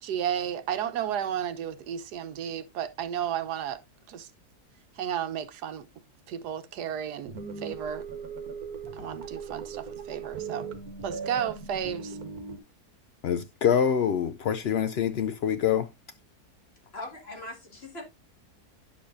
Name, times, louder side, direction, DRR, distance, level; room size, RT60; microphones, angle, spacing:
voice 1, 0.0-3.8 4.1-4.3 5.0-5.9 6.3-8.1 9.0-10.7 11.0-12.2, right 9 dB, 85° right, 1.4 m, -33 dB
sound 1, 7.2-12.6, right 5 dB, 70° right, 1.6 m, -38 dB
voice 2, 13.2-15.9, left 8 dB, 85° left, 0.5 m, -25 dB
voice 3, 16.9-18.0, left 2 dB, 40° left, 2.4 m, -40 dB
10.0 x 6.7 x 2.6 m
omnidirectional pair, 1.7 m